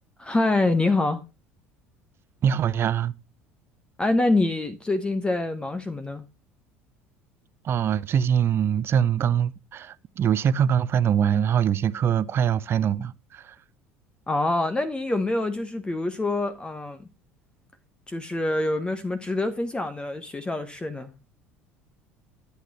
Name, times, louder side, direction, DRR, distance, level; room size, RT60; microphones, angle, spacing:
voice 1, 0.2-1.2 4.0-6.2 14.3-17.1 18.1-21.1, left 2 dB, 15° left, 1.0 m, -25 dB
voice 2, 2.4-3.1 7.6-13.5, right 8 dB, 35° right, 0.6 m, -23 dB
11.5 x 8.1 x 2.9 m
figure-of-eight pair, 65°, 7 cm